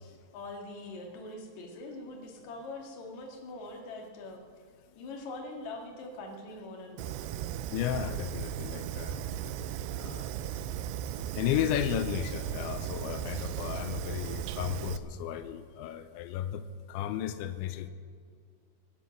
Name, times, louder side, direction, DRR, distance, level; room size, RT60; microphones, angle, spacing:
voice 1, 0.0-4.4 4.9-7.2, left 2 dB, 50° left, 1 dB, 2.7 m, -43 dB
Fire, 7.0-15.0, right 11 dB, 80° right, 2.7 m, -36 dB
voice 2, 7.7-9.6 9.9-10.3 11.3-17.9, left 11 dB, 85° left, 10 dB, 2.9 m, -34 dB
24.5 x 9.7 x 6.1 m, 2.2 s
omnidirectional pair, 5.3 m